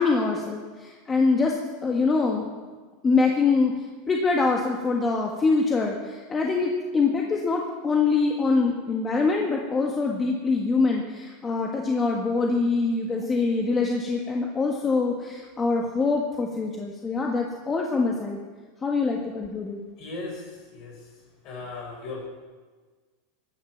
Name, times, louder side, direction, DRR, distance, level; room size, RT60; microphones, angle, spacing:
voice 1, 0.0-1.6 1.8-2.5 3.0-3.7 4.1-18.4 18.8-19.8, left 4 dB, 20° left, 0 dB, 1.6 m, -24 dB
voice 2, 20.0-21.1 21.4-22.3, left 3 dB, 50° left, 1 dB, 5.6 m, -37 dB
17.0 x 11.0 x 6.0 m, 1.4 s
supercardioid pair, 125°, 0 cm